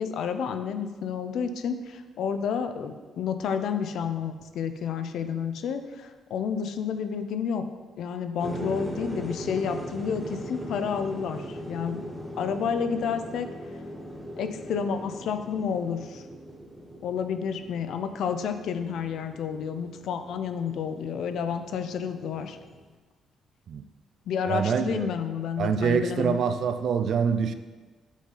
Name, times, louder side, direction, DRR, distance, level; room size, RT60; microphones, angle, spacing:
voice 1, 0.0-7.7 8.0-12.0 12.4-13.5 14.4-16.2 17.0-22.6 24.3-26.4, left 7 dB, 75° left, 9 dB, 0.5 m, -30 dB
sound 1, 8.4-22.9, equal, 5° right, 1.1 m, -40 dB
voice 2, 24.5-25.1 25.6-27.5, right 6 dB, 65° right, 10 dB, 0.4 m, -25 dB
8.2 x 4.0 x 3.9 m, 1.3 s
cardioid pair, 90°, 0 cm